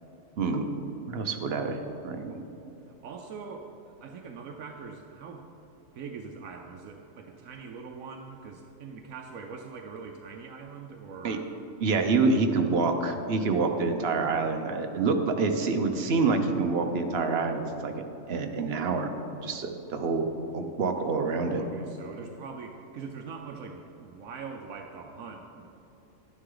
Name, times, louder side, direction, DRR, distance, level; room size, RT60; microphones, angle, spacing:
voice 1, 0.4-0.7 1.1-2.4 11.2-11.4 11.8-17.9 18.3-19.1 19.4-20.3 20.5-21.6, right 4 dB, 55° right, 5 dB, 1.0 m, -27 dB
voice 2, 2.9-5.5 5.9-11.5 21.6-25.7, right 5 dB, 75° right, 3 dB, 1.1 m, -42 dB
11.5 x 9.8 x 3.8 m, 2.9 s
omnidirectional pair, 1.4 m